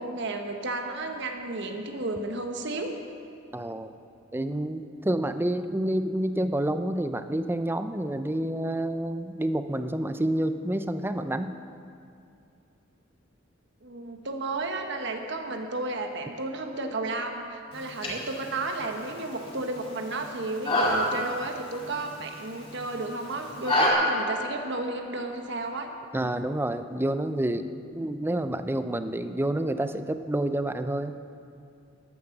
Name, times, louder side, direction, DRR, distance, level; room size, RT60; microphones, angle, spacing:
voice 1, 0.0-2.9 5.3-5.4 13.8-25.9, right 2 dB, 60° right, 4 dB, 1.2 m, -33 dB
voice 2, 3.5-3.9 4.3-11.5 26.1-27.7 27.9-31.2, right 1 dB, 10° right, 9 dB, 0.5 m, -28 dB
sound 1, 17.7-23.9, left 1 dB, 30° left, 2.4 m, -30 dB
14.0 x 11.0 x 5.9 m, 2.5 s
head